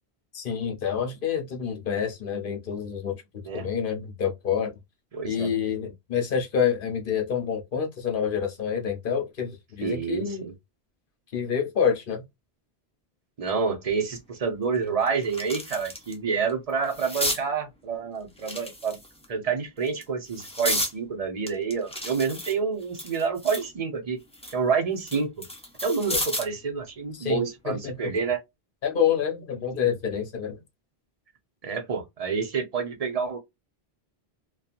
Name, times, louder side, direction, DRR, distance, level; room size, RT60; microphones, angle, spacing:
voice 1, 0.3-3.2 3.5-4.8 5.2-10.5 11.3-12.2 26.1-26.2 27.1-28.1 28.8-30.6, left 7 dB, 55° left, 0.9 m, -27 dB
voice 2, 5.1-5.5 9.8-10.5 13.4-19.0 19.3-24.2 24.5-25.4 25.8-28.4 31.6-33.4, right 5 dB, 40° right, 0.7 m, -28 dB
sound 1, 14.1-14.2 14.7-16.1 16.5-17.4 18.4-19.2 19.8-20.9 21.5-23.7 24.1-26.6 27.9-28.2, left 1 dB, 5° left, 0.6 m, -33 dB
2.7 x 2.3 x 2.4 m
omnidirectional pair, 1.1 m